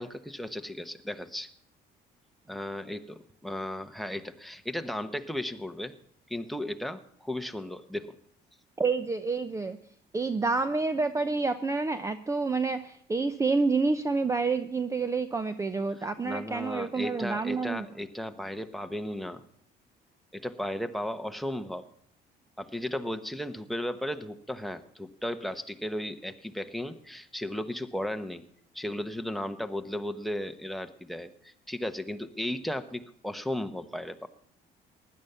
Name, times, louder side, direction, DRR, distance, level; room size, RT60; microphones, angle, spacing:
voice 1, 0.0-1.5 2.5-5.9 6.3-8.1 16.2-19.4 20.3-21.9 22.6-28.4 28.7-34.3, left 1 dB, ahead, 12 dB, 1.1 m, -35 dB
voice 2, 8.8-9.8 10.1-17.9, right 4 dB, 20° right, 12 dB, 0.7 m, -28 dB
16.0 x 11.0 x 5.6 m, 0.68 s
cardioid pair, 110°, 17 cm